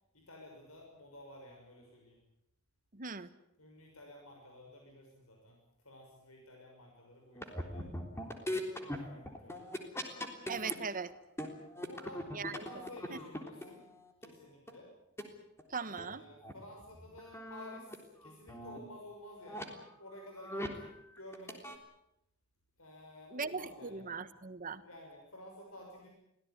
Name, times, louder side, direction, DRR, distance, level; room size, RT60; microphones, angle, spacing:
voice 1, 0.1-2.2 3.6-5.6 5.8-7.9 8.7-9.7 11.7-12.3 12.6-13.8 14.2-14.9 15.8-20.9 21.1-21.6 22.8-24.2 24.8-26.1, left 1 dB, 85° left, 1 dB, 6.2 m, -53 dB
voice 2, 2.9-3.3 10.5-11.1 12.3-12.6 13.1-13.2 15.7-16.2 23.3-24.8, right 5 dB, 40° right, 13 dB, 1.3 m, -39 dB
sound 1, 7.4-10.7 11.1-14.3 14.7-14.8 15.2-15.3 15.6-15.7 16.0-16.1 16.4-16.5 16.8-17.9 18.2-18.8 19.5-19.6 20.2-20.9 21.2-21.8, left 1 dB, 10° left, 3.5 m, -41 dB
24.5 x 17.5 x 9.7 m, 0.83 s
head